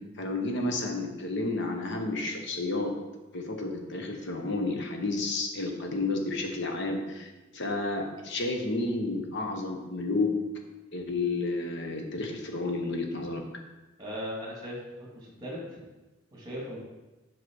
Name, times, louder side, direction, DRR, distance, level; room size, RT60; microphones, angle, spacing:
voice 1, 0.2-2.9 3.3-10.3 10.9-13.4, left 2 dB, 55° left, 3 dB, 1.2 m, -31 dB
voice 2, 14.0-15.6 16.3-16.8, equal, 20° right, -3 dB, 2.3 m, -38 dB
7.8 x 5.9 x 4.7 m, 1.1 s
head